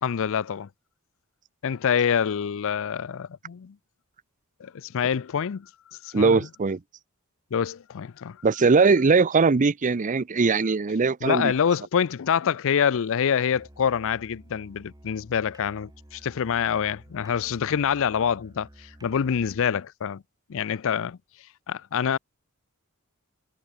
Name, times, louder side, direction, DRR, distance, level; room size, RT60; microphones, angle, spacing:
voice 1, 0.0-0.7 1.6-3.8 4.6-5.7 6.0-6.5 7.5-8.4 11.2-20.2 20.5-21.2 21.7-22.2, left 7 dB, 65° left, 0.5 m, -26 dB
voice 2, 6.1-6.8 8.4-11.5, right 4 dB, 35° right, 0.6 m, -20 dB
Musical instrument, 13.5-19.8, equal, 20° right, 3.4 m, -51 dB
head